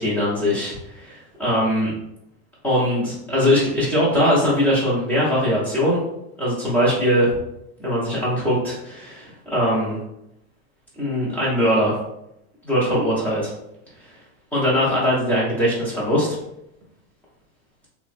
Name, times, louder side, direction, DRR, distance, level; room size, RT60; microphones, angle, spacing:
voice 1, 0.0-1.9 2.6-6.0 6.4-7.3 7.8-10.0 11.0-12.0 12.6-13.5 14.5-16.3, equal, 5° left, -7 dB, 0.5 m, -21 dB
3.3 x 2.0 x 2.4 m, 0.81 s
supercardioid pair, 165°, 35 cm